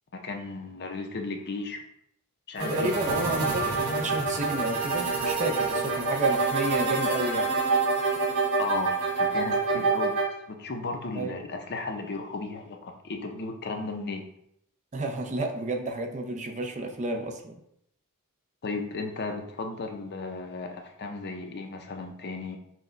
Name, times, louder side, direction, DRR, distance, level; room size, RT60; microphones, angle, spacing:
voice 1, 0.1-1.8 2.5-2.9 8.6-10.2 10.5-14.3 18.6-22.6, left 3 dB, 50° left, 4 dB, 0.6 m, -35 dB
sound 1, 2.6-10.2, right 3 dB, 80° right, 1.6 m, -27 dB
voice 2, 2.7-7.6 11.2-11.4 14.9-17.6, right 2 dB, 35° right, 4 dB, 0.5 m, -31 dB
6.2 x 2.2 x 3.8 m, 0.73 s
head